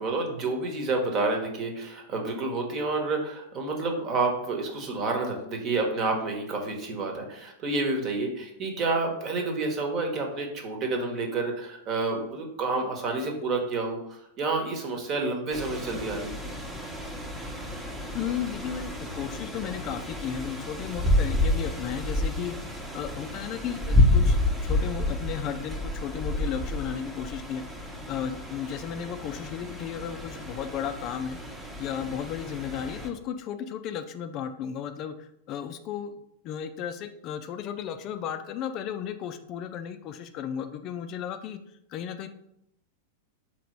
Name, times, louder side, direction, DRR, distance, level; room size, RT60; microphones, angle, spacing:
voice 1, 0.0-16.4, right 3 dB, 40° right, 2 dB, 1.2 m, -29 dB
sound 1, 15.5-33.1, left 1 dB, 5° right, 0.9 m, -29 dB
voice 2, 18.1-22.6 22.9-27.6 28.1-31.4 31.8-36.1 36.4-41.6 41.9-42.3, left 9 dB, 45° left, 9 dB, 0.4 m, -34 dB
3.9 x 2.9 x 4.5 m, 0.78 s
hypercardioid pair, 105°, 0 cm